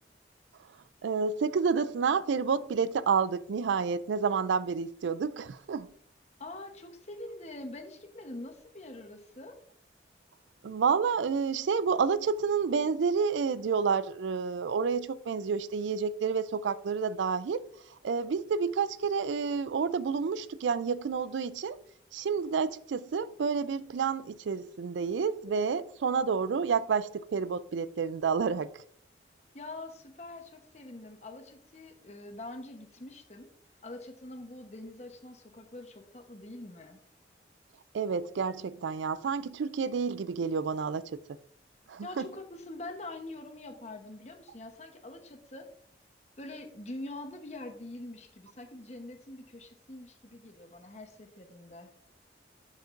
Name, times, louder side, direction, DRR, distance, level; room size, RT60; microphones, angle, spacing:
voice 1, 1.0-5.9 10.6-17.6 18.0-21.8 22.1-28.8 37.9-41.0 41.9-42.3, right 5 dB, 85° right, 0.4 m, -29 dB
voice 2, 6.4-9.6 29.5-33.5 33.8-37.0 42.0-45.7 46.4-51.9, left 2 dB, 35° left, 1.0 m, -44 dB
7.6 x 7.3 x 2.6 m
head